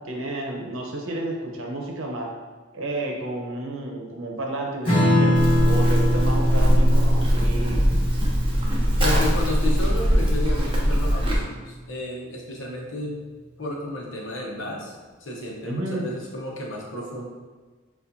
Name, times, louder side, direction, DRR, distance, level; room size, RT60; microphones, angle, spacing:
voice 1, 0.0-2.3 2.7-5.3 5.7-7.9 15.6-16.1, right 1 dB, 80° right, 0 dB, 0.8 m, -31 dB
Strum, 4.8-11.7, equal, 25° left, 1.3 m, -24 dB
Livestock farm animals working animals, 5.3-11.4, equal, 25° right, 0.7 m, -21 dB
voice 2, 9.0-13.2 13.6-17.3, left 1 dB, 65° left, -2 dB, 0.9 m, -32 dB
6.8 x 2.5 x 2.6 m, 1.4 s
head